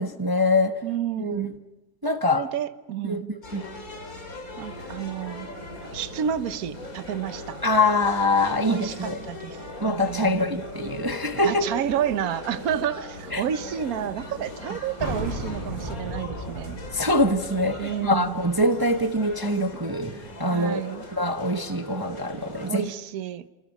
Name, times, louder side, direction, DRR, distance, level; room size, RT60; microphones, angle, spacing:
voice 1, 0.0-0.8 1.2-1.5 2.0-2.5 3.0-3.7 7.6-9.2 9.8-11.7 13.3-13.4 16.9-20.8 21.1-22.9, left 1 dB, 30° right, 0.4 m, -24 dB
voice 2, 0.8-1.5 2.3-3.3 4.6-5.5 5.9-7.6 8.7-9.6 9.9-10.6 11.4-16.8 17.8-18.5 20.5-21.0 22.7-23.5, right 9 dB, 55° right, 1.3 m, -30 dB
sound 1, 3.4-22.7, left 2 dB, 45° left, 3.5 m, -40 dB
sound 2, 15.0-20.3, equal, 20° left, 5.5 m, -36 dB
29.0 x 26.5 x 5.4 m
omnidirectional pair, 2.1 m